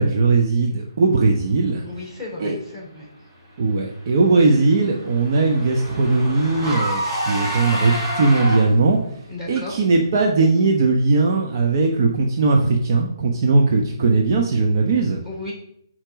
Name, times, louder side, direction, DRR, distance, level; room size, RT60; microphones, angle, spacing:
voice 1, 0.0-1.8 2.4-2.6 3.6-9.0 9.5-15.2, right 3 dB, 45° right, 1 dB, 1.0 m, -19 dB
voice 2, 1.8-3.0 4.3-4.4 9.3-9.8 15.2-15.5, left 2 dB, 5° right, -6 dB, 3.8 m, -34 dB
Car / Engine, 3.9-9.0, equal, 25° right, 3.8 m, -29 dB
9.0 x 4.5 x 5.1 m, 0.72 s
figure-of-eight pair, 140°, 3 cm